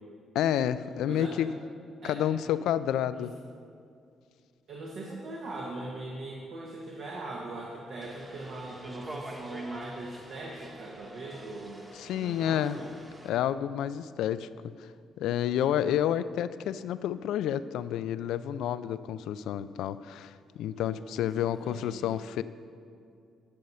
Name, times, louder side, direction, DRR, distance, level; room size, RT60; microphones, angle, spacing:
voice 1, 0.3-1.5 2.0-3.3 12.0-12.8 13.2-14.5 14.8-14.9 15.2-22.4, left 10 dB, 85° left, 15 dB, 0.3 m, -29 dB
voice 2, 1.1-1.4 2.0-2.2 3.1-3.3 4.7-11.8 12.1-12.9 20.8-22.1, right 2 dB, 65° right, -3 dB, 1.4 m, -41 dB
sound 1, 8.0-13.3, right 1 dB, 25° right, 1.5 m, -47 dB
11.5 x 6.4 x 5.6 m, 2.4 s
cardioid pair, 90°, 0 cm